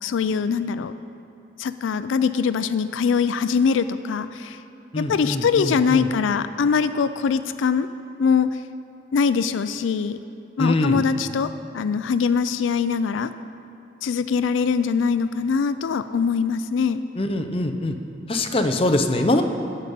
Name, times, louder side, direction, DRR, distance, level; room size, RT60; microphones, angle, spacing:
voice 1, 0.0-0.9 1.6-4.6 5.0-7.9 8.2-8.6 9.1-10.2 10.6-13.3 14.0-17.0, left 6 dB, 85° left, 12 dB, 0.4 m, -22 dB
voice 2, 4.9-6.1 10.6-11.0 17.2-17.9 18.3-19.4, left 1 dB, 30° left, 5 dB, 0.6 m, -23 dB
15.0 x 5.4 x 7.6 m, 2.7 s
head